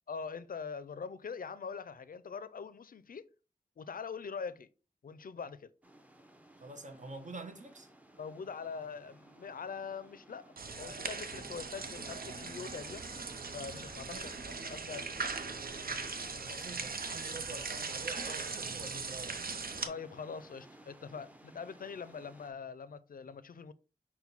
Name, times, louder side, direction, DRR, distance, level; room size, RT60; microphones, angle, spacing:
voice 1, 0.1-3.3 3.8-4.7 5.0-5.7 8.2-13.1 13.5-15.6 19.9-23.7, left 5 dB, 65° left, 0.4 m, -43 dB
sound 1, 5.8-22.5, right 1 dB, 10° right, 0.7 m, -58 dB
voice 2, 6.6-7.9 14.1-14.3 16.4-19.5, right 3 dB, 55° right, 0.8 m, -47 dB
sound 2, 10.6-19.9, right 4 dB, 75° right, 0.6 m, -39 dB
5.8 x 2.2 x 4.0 m
cardioid pair, 50°, 15 cm